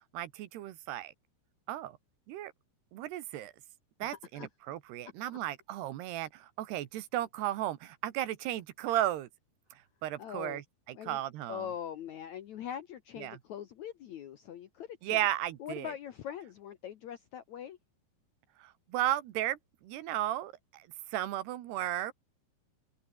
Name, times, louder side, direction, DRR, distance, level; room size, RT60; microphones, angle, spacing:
voice 1, 0.1-1.1 1.7-2.0 2.3-2.5 2.9-3.5 4.0-9.3 10.0-11.7 13.2-13.4 15.0-15.9 18.6-22.1, right 13 dB, 80° right, 3.5 m, -35 dB
voice 2, 4.0-4.5 10.2-10.6 10.9-11.2 11.5-15.3 15.6-17.8, left 9 dB, 70° left, 1.8 m, -42 dB
open air
omnidirectional pair, 4.7 m